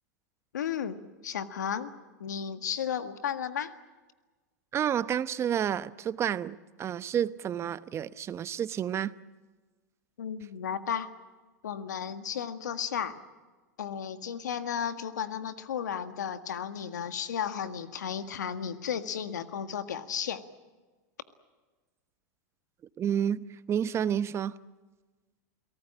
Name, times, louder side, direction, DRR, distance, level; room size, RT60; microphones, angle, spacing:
voice 1, 0.5-1.9 2.2-3.7 10.2-11.1 11.6-13.2 13.8-20.4, left 8 dB, 85° left, 10 dB, 1.7 m, -34 dB
voice 2, 4.7-9.1 23.0-24.6, right 9 dB, 30° right, 15 dB, 0.9 m, -30 dB
29.0 x 18.0 x 8.8 m, 1.3 s
hypercardioid pair, 110°, 9 cm